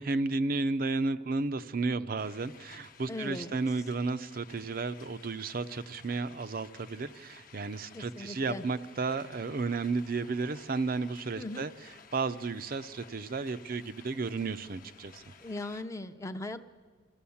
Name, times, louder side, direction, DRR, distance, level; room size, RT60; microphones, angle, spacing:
voice 1, 0.0-11.7 12.1-15.2, right 3 dB, 50° right, 10 dB, 0.5 m, -33 dB
sound 1, 2.2-15.8, left 6 dB, 45° left, 0.9 m, -55 dB
voice 2, 3.1-3.5 7.9-8.6 11.4-11.7 15.4-16.7, left 2 dB, 15° left, 8 dB, 0.6 m, -39 dB
26.5 x 14.5 x 7.1 m, 1.5 s
head